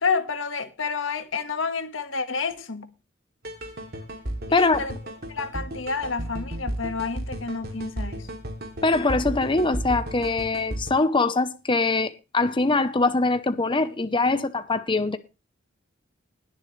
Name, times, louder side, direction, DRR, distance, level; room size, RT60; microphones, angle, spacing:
voice 1, 0.0-2.9 4.5-5.0 5.3-8.3, left 4 dB, 80° left, 1.7 m, -29 dB
sound 1, 3.4-10.9, right 1 dB, 55° right, 2.9 m, -34 dB
voice 2, 4.5-4.8 8.8-15.2, left 3 dB, 25° left, 0.8 m, -23 dB
20.5 x 7.1 x 3.3 m
head